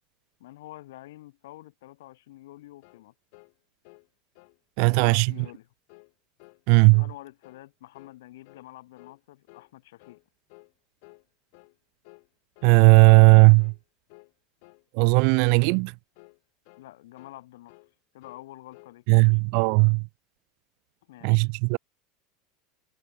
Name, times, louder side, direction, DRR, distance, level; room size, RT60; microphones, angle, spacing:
voice 1, 0.4-3.1 4.9-5.7 7.0-10.2 16.8-17.8 18.1-19.4 21.1-21.5, left 16 dB, 85° left, 4.5 m, -47 dB
sound 1, 2.8-3.1 3.3-3.5 3.8-4.1 4.4-4.6 4.9-5.1 5.4-5.6 5.9-6.1 6.4-6.6 6.9-7.2 7.4-7.7 7.9-8.2 8.5-8.7 9.0-9.2 9.5-9.7 10.0-10.2 10.5-10.7 11.0-11.3 11.5-11.8 12.0-12.3 12.6-12.8 13.1-13.3 13.6-13.8 14.1-14.3 14.6-14.9 15.1-15.4 15.6-15.9 16.2-16.4 16.7-16.9 17.2-17.4 17.7-17.9 18.2-19.0, left 32 dB, 50° left, 2.0 m, -54 dB
voice 2, 4.8-5.3 6.7-7.0 12.6-13.7 14.9-15.9 19.1-20.1 21.2-21.8, right 40 dB or more, 50° right, 0.4 m, -17 dB
supercardioid pair, 180°, 0 cm